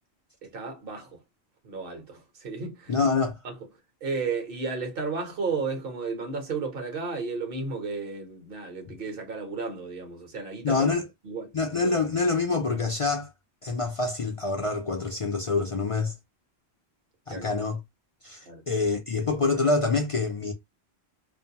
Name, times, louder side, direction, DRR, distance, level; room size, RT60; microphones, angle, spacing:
voice 1, 0.4-1.2 1.6-3.0 3.4-3.6 4.0-10.9 11.2-11.5 17.3-17.5 18.5-18.6, right 4 dB, 60° right, 1.1 m, -33 dB
voice 2, 2.9-3.4 10.6-11.0 11.5-13.3 13.6-16.1 17.3-17.8 18.2-20.5, left 4 dB, 55° left, 0.3 m, -26 dB
2.5 x 2.2 x 2.7 m
omnidirectional pair, 1.1 m